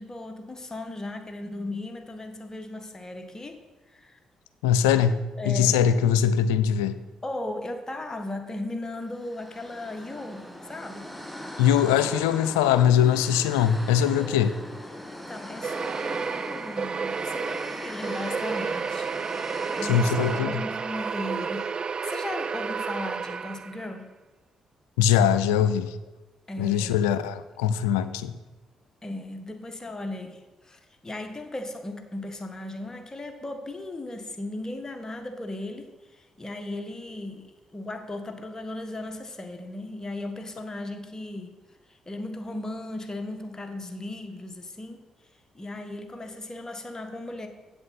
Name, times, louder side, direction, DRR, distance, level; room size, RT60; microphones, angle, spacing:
voice 1, 0.0-3.6 3.9-4.2 5.4-5.8 7.2-11.1 14.0-14.4 15.1-21.8 22.0-24.1 26.5-27.1 29.0-41.5 41.9-45.0 45.5-47.5, left 2 dB, 25° left, 1.6 m, -37 dB
voice 2, 4.6-7.0 11.6-14.6 19.9-20.6 25.0-26.0 26.6-28.4, left 8 dB, 90° left, 0.4 m, -22 dB
sound 1, 9.1-20.4, left 1 dB, 5° left, 1.5 m, -40 dB
sound 2, 15.6-23.9, right 5 dB, 45° right, 0.3 m, -31 dB
8.4 x 7.7 x 5.9 m
hypercardioid pair, 45°, 2 cm